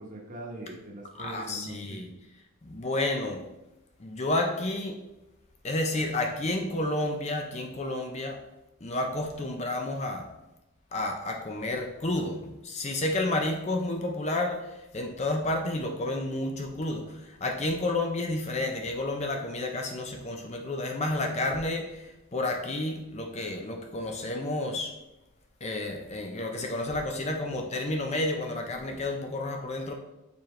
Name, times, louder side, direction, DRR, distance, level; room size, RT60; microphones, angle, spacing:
voice 1, 0.0-2.0, right 2 dB, 35° right, -1 dB, 1.1 m, -41 dB
voice 2, 1.1-2.1 2.6-3.4 4.0-5.0 5.6-8.4 8.8-10.3 10.9-24.9 25.6-29.9, left 2 dB, 30° left, 3 dB, 0.5 m, -31 dB
7.0 x 4.4 x 3.2 m, 0.95 s
head